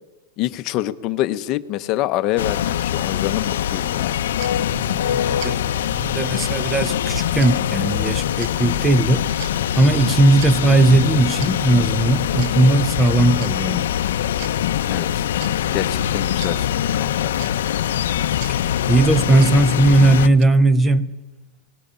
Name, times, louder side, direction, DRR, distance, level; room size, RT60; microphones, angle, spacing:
voice 1, 0.4-4.2 14.9-15.2 15.7-17.3, left 14 dB, 35° left, 0.7 m, -26 dB
sound 1, 2.4-20.3, left 11 dB, 80° left, 0.7 m, -23 dB
sound 2, 4.0-20.4, right 7 dB, 55° right, 1.1 m, -39 dB
voice 2, 4.6-9.2 9.8-13.9 18.5-21.1, right 2 dB, 10° right, 0.6 m, -18 dB
19.0 x 17.5 x 8.6 m
supercardioid pair, 160°, 0 cm